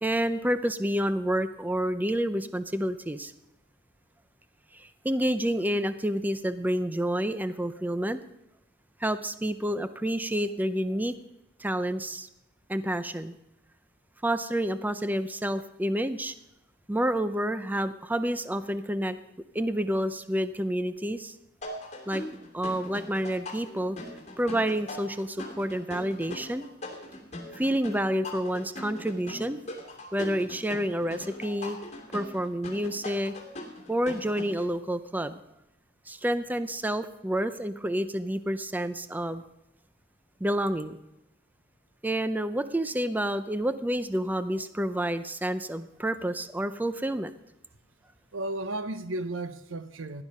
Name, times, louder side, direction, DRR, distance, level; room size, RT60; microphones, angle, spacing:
voice 1, 0.0-3.3 4.7-8.2 9.0-11.1 11.6-12.3 12.7-13.3 14.2-16.3 16.9-19.2 19.5-21.3 22.1-22.2 22.5-24.0 24.4-26.7 27.5-29.6 30.1-31.8 32.1-33.3 33.9-35.4 36.1-39.4 40.4-41.0 42.0-47.3, right 1 dB, 10° right, 11 dB, 0.5 m, -29 dB
sound 1, 21.6-34.7, left 1 dB, 35° left, 2.9 m, -41 dB
voice 2, 48.3-50.2, right 2 dB, 90° right, 12 dB, 0.9 m, -34 dB
16.5 x 11.0 x 5.5 m, 0.87 s
head